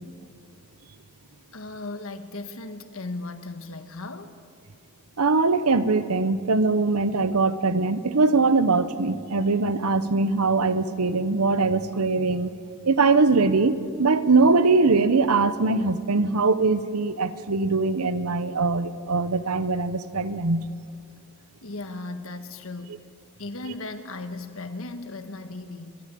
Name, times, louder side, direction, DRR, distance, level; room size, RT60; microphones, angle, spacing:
voice 1, 1.5-4.3 21.6-23.0 23.4-26.0, left 2 dB, 65° left, 8 dB, 1.5 m, -36 dB
voice 2, 5.2-12.5 12.8-20.6, right 3 dB, 85° right, 13 dB, 1.0 m, -22 dB
29.0 x 13.0 x 8.5 m, 2.3 s
head